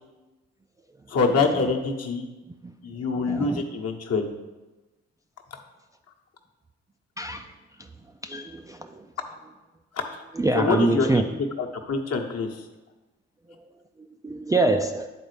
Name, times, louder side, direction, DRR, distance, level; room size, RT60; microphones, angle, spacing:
voice 1, 1.1-2.3 2.8-4.3 10.5-11.2 11.6-12.5, left 4 dB, 45° left, 1.0 m, -25 dB
voice 2, 3.2-3.6 7.2-7.4 8.2-9.0 10.4-11.2 14.2-15.1, right 2 dB, 10° right, 0.3 m, -25 dB
9.9 x 4.0 x 3.3 m
hypercardioid pair, 40°, 34 cm